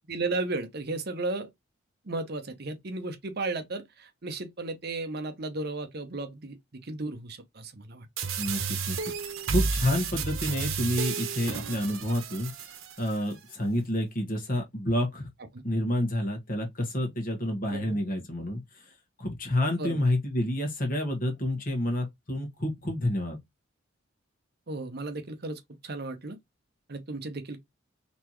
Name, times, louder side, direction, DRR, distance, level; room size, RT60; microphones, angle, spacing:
voice 1, 0.1-1.5 2.0-8.1 17.7-18.0 19.8-20.0 24.7-26.4 26.9-27.6, right 2 dB, 50° right, 0.8 m, -34 dB
sound 1, 8.2-13.2, right 5 dB, 90° right, 0.9 m, -32 dB
voice 2, 8.4-9.0 9.5-12.5 13.0-15.3 15.6-18.6 19.2-23.4, left 1 dB, 45° left, 1.5 m, -29 dB
4.2 x 3.3 x 3.0 m
head